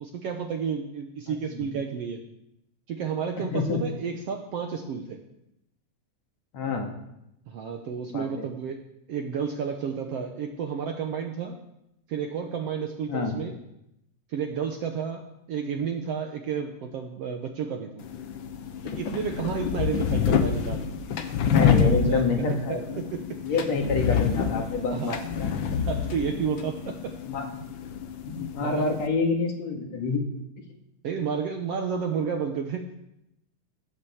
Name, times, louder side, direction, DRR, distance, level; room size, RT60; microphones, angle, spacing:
voice 1, 0.0-2.2 2.9-5.2 7.5-8.8 9.1-11.6 12.1-13.6 14.3-18.0 18.8-20.9 21.4-22.2 22.7-23.2 24.9-25.2 25.9-27.1 28.6-28.9 31.0-32.9, right 6 dB, 65° right, 4 dB, 1.6 m, -31 dB
voice 2, 1.3-1.8 3.4-3.8 6.5-6.9 8.1-8.5 13.1-13.3 21.5-22.8 23.4-25.5 27.2-27.6 28.2-30.2, left 4 dB, 60° left, 2 dB, 3.0 m, -28 dB
sound 1, 18.0-29.1, left 7 dB, 85° left, 1.0 m, -27 dB
15.5 x 8.7 x 7.0 m, 0.84 s
omnidirectional pair, 3.7 m